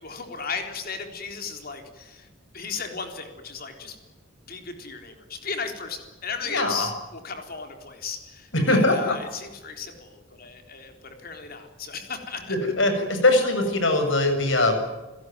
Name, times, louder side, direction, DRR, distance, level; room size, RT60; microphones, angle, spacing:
voice 1, 0.0-2.3 2.5-4.0 4.5-12.6, left 5 dB, 50° left, 5 dB, 3.8 m, -35 dB
voice 2, 6.4-6.9 8.5-9.1 12.5-14.8, left 2 dB, 65° left, 7 dB, 7.2 m, -21 dB
30.0 x 17.5 x 9.4 m, 1.1 s
head